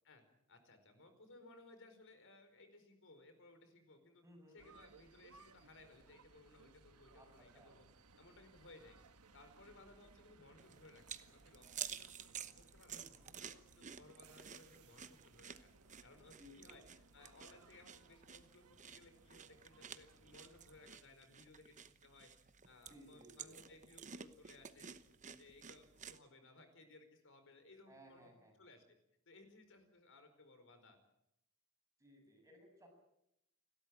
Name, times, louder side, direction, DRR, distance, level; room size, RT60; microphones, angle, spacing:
voice 1, 0.5-4.2 4.5-7.9 8.1-9.0 9.3-13.0 13.4-15.7 16.0-16.8 17.1-21.8 22.0-24.9 25.2-28.3 28.6-28.8 29.2-31.0, left 2 dB, 60° left, 9 dB, 4.9 m, -62 dB
voice 2, 4.2-4.7 7.1-7.7 9.7-9.8 12.9-13.3 16.4-16.8 22.9-23.7 27.9-28.5 32.0-32.9, equal, 15° right, 2 dB, 7.0 m, -61 dB
sound 1, 4.6-20.9, right 3 dB, 85° right, 1.5 m, -65 dB
sound 2, 10.6-26.2, right 8 dB, 35° right, 1.0 m, -52 dB
29.5 x 13.0 x 8.8 m, 0.80 s
head